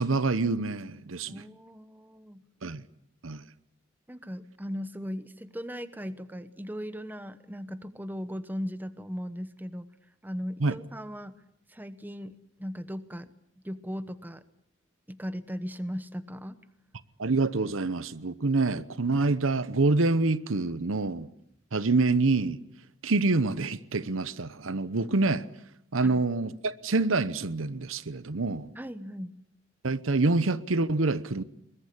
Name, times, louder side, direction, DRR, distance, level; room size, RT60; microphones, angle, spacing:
voice 1, 0.0-1.4 2.6-2.8 3.2-3.4 10.6-10.7 17.2-21.3 21.7-22.6 23.0-25.4 25.9-28.7 29.8-31.4, right 3 dB, 85° right, 0.9 m, -26 dB
voice 2, 1.3-2.4 4.1-9.9 10.2-11.4 11.7-13.3 13.6-14.4 15.1-16.6 26.0-26.2 28.7-29.4, equal, 10° right, 1.0 m, -38 dB
22.5 x 21.0 x 8.4 m
head